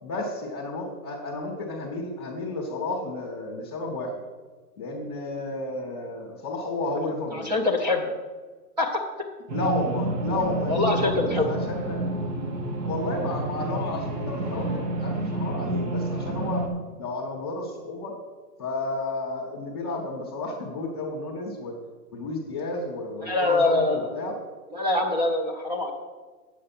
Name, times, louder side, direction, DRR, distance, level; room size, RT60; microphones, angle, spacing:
voice 1, 0.0-4.1 4.8-7.5 9.5-12.0 12.8-16.7 17.0-18.1 18.6-21.8 22.1-24.4, left 2 dB, 15° left, -3 dB, 0.7 m, -32 dB
voice 2, 7.3-8.2 8.8-9.0 10.7-11.6 23.2-24.1 24.7-25.9, left 2 dB, 30° right, 2 dB, 0.6 m, -24 dB
sound 1, 9.5-16.7, right 2 dB, 85° right, 1.5 m, -29 dB
8.5 x 6.5 x 5.8 m, 1.4 s
hypercardioid pair, 180°, 47 cm